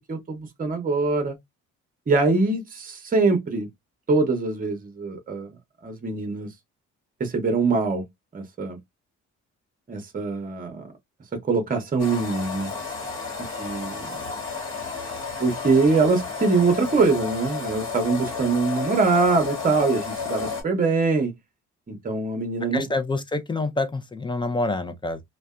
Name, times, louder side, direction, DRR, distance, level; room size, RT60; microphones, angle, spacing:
voice 1, 0.0-1.4 2.1-3.7 4.1-5.5 5.8-6.5 7.2-8.0 8.3-8.8 9.9-10.9 11.3-12.7 13.4-14.1 15.4-21.3 21.9-22.9, right 4 dB, 30° right, 0.8 m, -23 dB
sound 1, 12.0-20.6, left 5 dB, 45° left, 1.2 m, -32 dB
voice 2, 22.7-25.2, left 2 dB, 15° left, 0.5 m, -27 dB
2.6 x 2.1 x 2.3 m
cardioid pair, 90°, 30 cm